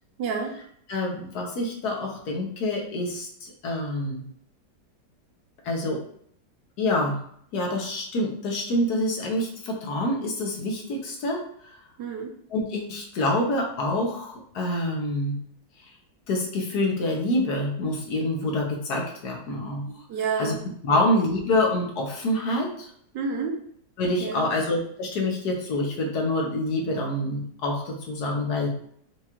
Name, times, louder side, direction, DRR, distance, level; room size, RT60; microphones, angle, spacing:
voice 1, 0.2-0.6 12.0-12.3 19.9-20.6 20.9-21.0 23.1-23.6 24.2-24.5, right 5 dB, 80° right, 2 dB, 1.4 m, -30 dB
voice 2, 0.9-4.2 5.6-6.0 6.8-7.2 7.5-11.4 12.5-15.4 16.3-19.9 20.4-20.5 20.8-22.9 24.0-28.7, left 1 dB, 70° left, 0 dB, 1.3 m, -26 dB
4.6 x 2.4 x 2.9 m, 0.65 s
omnidirectional pair, 1.9 m